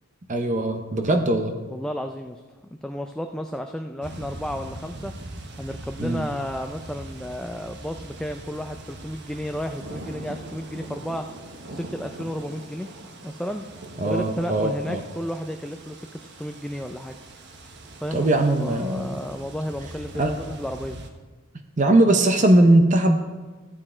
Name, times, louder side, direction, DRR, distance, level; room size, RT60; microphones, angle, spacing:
voice 1, 0.3-1.5 6.0-6.3 14.0-15.0 18.1-19.2 20.2-20.3 21.8-23.2, right 1 dB, 35° right, 5 dB, 0.7 m, -20 dB
voice 2, 1.7-2.4 2.8-5.1 5.6-11.2 11.7-12.9 13.2-13.6 14.0-16.1 16.4-17.2 18.0-21.0, equal, 5° left, 5 dB, 0.4 m, -32 dB
sound 1, 4.0-21.1, right 1 dB, 55° right, 1.2 m, -41 dB
14.0 x 8.6 x 4.4 m, 1.3 s
head